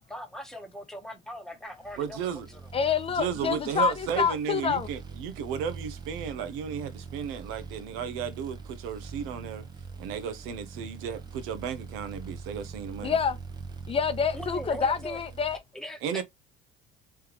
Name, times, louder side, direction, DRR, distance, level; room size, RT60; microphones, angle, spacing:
voice 1, 0.0-2.7 14.3-15.2 15.7-16.2, equal, ahead, 1.1 m, -41 dB
sound 1, 1.8-15.6, right 5 dB, 20° right, 0.8 m, -43 dB
voice 2, 2.0-2.5 3.1-9.6 10.0-13.2 16.0-16.2, right 8 dB, 75° right, 0.9 m, -34 dB
voice 3, 2.7-4.9 13.0-13.4 13.9-15.6, left 6 dB, 30° left, 0.6 m, -27 dB
3.4 x 3.3 x 3.0 m
supercardioid pair, 115°, 20 cm